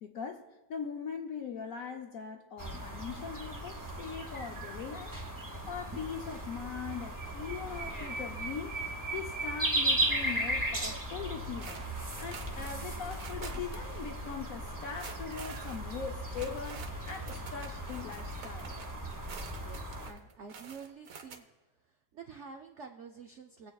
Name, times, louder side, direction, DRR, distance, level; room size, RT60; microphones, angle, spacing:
voice 1, 0.0-5.2 5.7-8.8 9.1-11.8 12.2-18.8, left 6 dB, 65° left, 0.9 m, -41 dB
sound 1, 2.6-20.1, right 1 dB, 20° right, 0.5 m, -36 dB
sound 2, 11.6-13.9 14.1-14.3 14.8-21.4, right 5 dB, 55° right, 1.1 m, -48 dB
voice 2, 19.6-21.5 21.8-23.7, right 5 dB, 75° right, 0.6 m, -49 dB
20.5 x 7.8 x 2.3 m
omnidirectional pair, 2.0 m